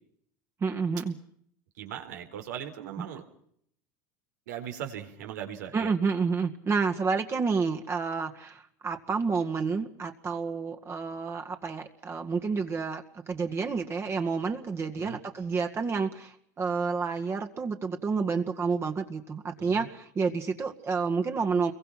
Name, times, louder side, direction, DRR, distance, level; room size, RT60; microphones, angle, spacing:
voice 1, 0.6-1.1 5.7-21.7, right 5 dB, 30° right, 5 dB, 2.0 m, -29 dB
voice 2, 1.8-3.2 4.5-5.9 14.9-15.2 19.6-19.9, right 9 dB, 85° right, 5 dB, 4.5 m, -39 dB
29.0 x 23.0 x 5.9 m, 0.67 s
supercardioid pair, 105°, 9 cm